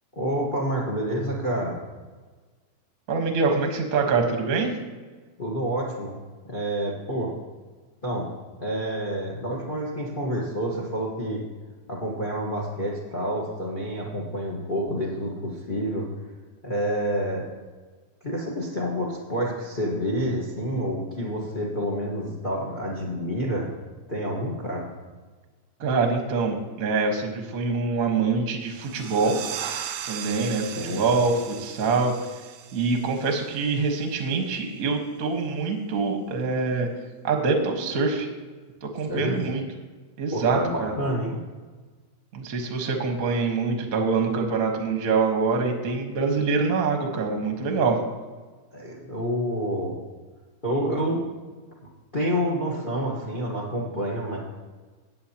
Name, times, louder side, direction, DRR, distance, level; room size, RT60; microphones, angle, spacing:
voice 1, 0.1-1.8 5.4-6.2 6.5-7.3 8.0-8.3 8.6-11.4 11.9-16.1 16.6-17.4 18.2-23.7 24.1-24.9 30.7-31.0 39.0-39.4 40.3-41.4 48.7-50.0 50.6-51.2 52.1-54.4, equal, 80° left, -2 dB, 0.4 m, -28 dB
voice 2, 3.1-4.7 25.8-29.4 30.1-32.1 32.7-36.9 37.2-38.3 38.8-39.6 40.2-40.9 42.3-48.0, right 4 dB, 50° right, 3 dB, 1.0 m, -25 dB
sound 1, 28.7-34.0, right 10 dB, 85° right, 2.3 m, -37 dB
16.0 x 9.4 x 2.9 m, 1.4 s
omnidirectional pair, 3.6 m